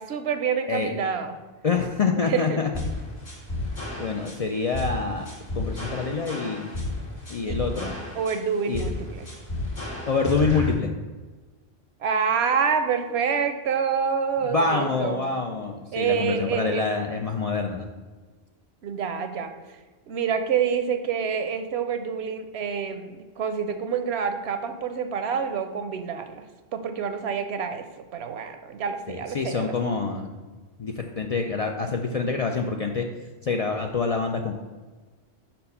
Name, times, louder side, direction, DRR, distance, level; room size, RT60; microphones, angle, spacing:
voice 1, 0.0-1.4 2.2-2.6 7.5-7.6 8.2-9.3 12.0-15.2 15.9-16.9 18.8-19.5 20.1-26.4 26.7-29.7, right 6 dB, 80° right, 8 dB, 0.9 m, -27 dB
voice 2, 1.6-2.7 3.9-5.3 5.5-6.7 7.3-7.9 8.7-8.9 10.1-10.9 14.4-17.9 29.1-30.4 30.8-33.1 33.4-34.5, left 4 dB, 55° left, 3 dB, 0.4 m, -26 dB
sound 1, 2.7-10.7, left 2 dB, 70° left, 2.0 m, -32 dB
5.2 x 4.4 x 5.4 m, 1.3 s
omnidirectional pair, 1.1 m